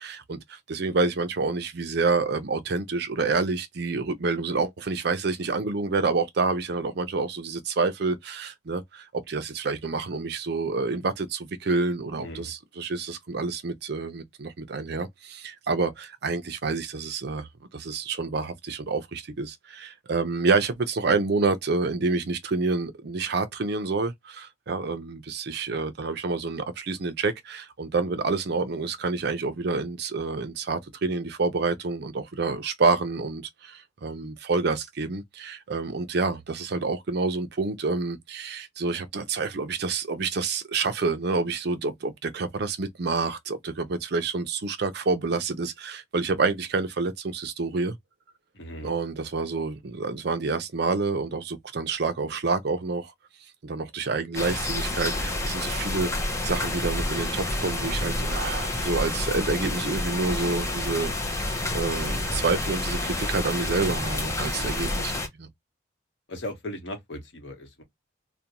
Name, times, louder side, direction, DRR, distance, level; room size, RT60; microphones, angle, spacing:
voice 1, 0.0-48.0 48.8-53.1 53.6-56.1 56.4-61.1 61.5-65.5, right 4 dB, 60° right, 0.5 m, -28 dB
voice 2, 12.2-12.5 48.5-48.9 66.3-67.8, left 1 dB, 70° left, 1.0 m, -37 dB
sound 1, 54.3-65.3, left 1 dB, 15° left, 0.5 m, -29 dB
2.5 x 2.2 x 2.8 m
head